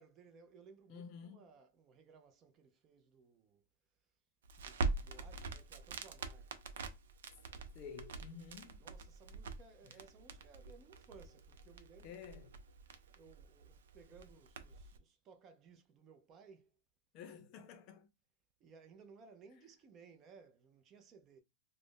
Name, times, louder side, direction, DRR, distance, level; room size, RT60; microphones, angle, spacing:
voice 1, 0.0-3.6 4.6-6.5 8.8-12.4 13.1-16.7 18.6-21.4, right 5 dB, 30° right, 0.5 m, -61 dB
voice 2, 0.9-1.5 7.7-8.8 9.8-10.0 12.0-12.6 17.1-18.1, left 6 dB, 40° left, 0.6 m, -51 dB
Crackle, 4.4-15.0, right 4 dB, 90° right, 0.5 m, -44 dB
2.5 x 2.1 x 3.6 m
supercardioid pair, 150°, 0 cm